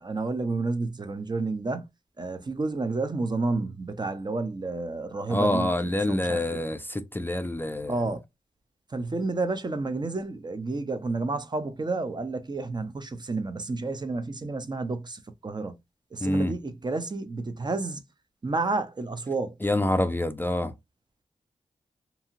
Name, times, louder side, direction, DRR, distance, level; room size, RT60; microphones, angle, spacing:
voice 1, 0.0-1.9 2.2-6.6 7.9-8.2 8.9-15.8 16.1-18.0 18.4-19.5, right 3 dB, 35° right, 0.5 m, -30 dB
voice 2, 5.3-8.0 16.2-16.5 19.6-20.7, left 1 dB, 15° left, 0.4 m, -26 dB
2.8 x 2.7 x 2.4 m
cardioid pair, 55°, 13 cm